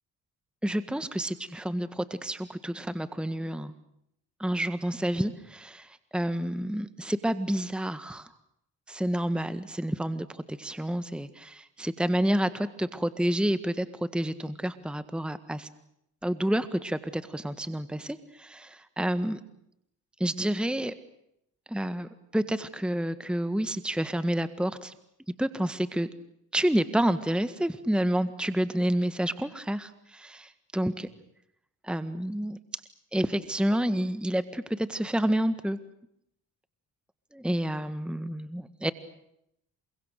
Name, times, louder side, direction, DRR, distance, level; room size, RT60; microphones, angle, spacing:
voice 1, 0.6-3.7 4.4-8.3 8.9-15.7 16.2-19.4 20.2-20.9 21.7-24.9 25.4-26.1 26.5-31.1 31.8-32.6 33.1-35.8 37.3-38.9, right 1 dB, ahead, 12 dB, 1.7 m, -29 dB
29.0 x 24.5 x 6.7 m, 0.77 s
supercardioid pair, 50°, 47 cm